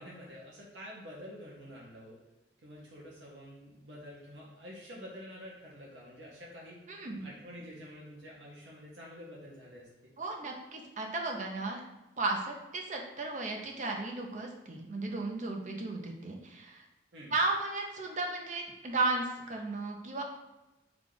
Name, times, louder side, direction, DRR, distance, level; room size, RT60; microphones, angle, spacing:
voice 1, 0.0-2.2 2.6-6.8 7.2-10.2 17.1-17.3, equal, 70° right, -5 dB, 0.8 m, -48 dB
voice 2, 6.9-7.2 10.2-11.8 12.2-16.8 17.3-20.2, right 3 dB, 40° right, 1 dB, 0.6 m, -34 dB
4.9 x 2.4 x 3.8 m, 1.0 s
head